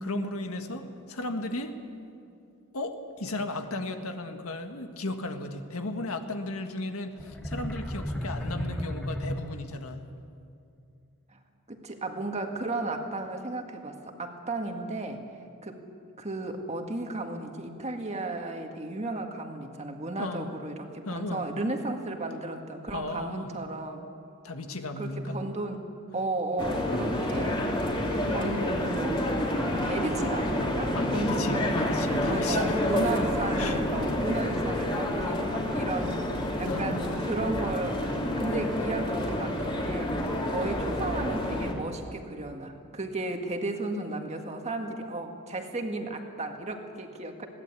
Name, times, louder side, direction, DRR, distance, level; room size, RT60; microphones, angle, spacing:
voice 1, 0.0-1.7 2.7-10.1 20.2-20.5 21.1-21.4 22.9-23.5 24.4-25.4 30.9-32.7 33.6-33.8 36.7-37.1, left 2 dB, 75° left, 6 dB, 1.7 m, -35 dB
sound 1, 7.2-10.0, equal, 5° left, 1.2 m, -34 dB
voice 2, 11.7-15.2 15.6-15.9 16.2-24.0 25.0-25.8 26.1-27.8 28.3-29.2 29.8-40.2 40.5-47.5, right 2 dB, 30° right, 4 dB, 1.9 m, -34 dB
sound 2, 26.6-41.7, left 1 dB, 25° left, 2.8 m, -29 dB
21.5 x 17.0 x 8.5 m, 2.4 s
head